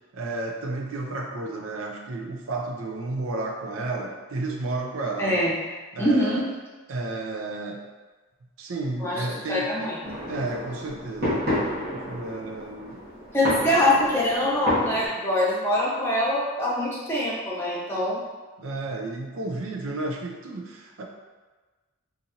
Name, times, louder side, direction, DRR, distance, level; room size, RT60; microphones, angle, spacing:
voice 1, 0.1-5.4 5.9-6.4 6.9-7.8 8.6-9.9 10.3-11.4 11.9-13.0 13.6-13.7 18.6-21.0, right 2 dB, 80° right, 1 dB, 0.5 m, -32 dB
voice 2, 5.2-5.5 6.0-6.5 9.0-10.0 13.3-18.2, left 1 dB, 10° left, -7 dB, 0.7 m, -24 dB
sound 1, 10.0-15.1, left 1 dB, 50° right, 1.3 m, -30 dB
3.9 x 2.5 x 2.8 m, 1.3 s
head